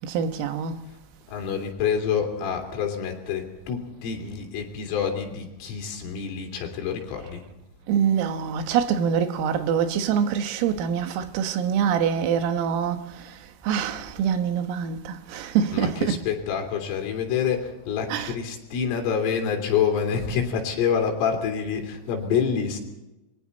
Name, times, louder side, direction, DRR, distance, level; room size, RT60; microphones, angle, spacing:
voice 1, 0.0-0.9 7.9-16.2 18.1-18.4, right 7 dB, 85° right, 4.0 m, -25 dB
voice 2, 1.3-7.4 15.3-22.8, left 7 dB, 80° left, 5.7 m, -27 dB
29.5 x 23.5 x 4.1 m
omnidirectional pair, 5.8 m